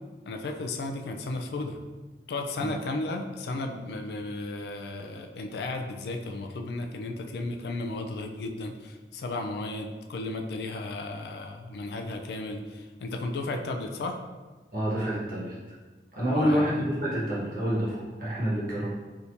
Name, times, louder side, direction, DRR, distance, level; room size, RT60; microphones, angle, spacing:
voice 1, 0.3-1.8 2.3-14.2 16.3-16.8, left 2 dB, 70° left, 4 dB, 0.3 m, -34 dB
voice 2, 14.7-15.6 16.1-18.9, equal, 50° right, -7 dB, 1.1 m, -28 dB
3.5 x 2.8 x 2.6 m, 1.3 s
head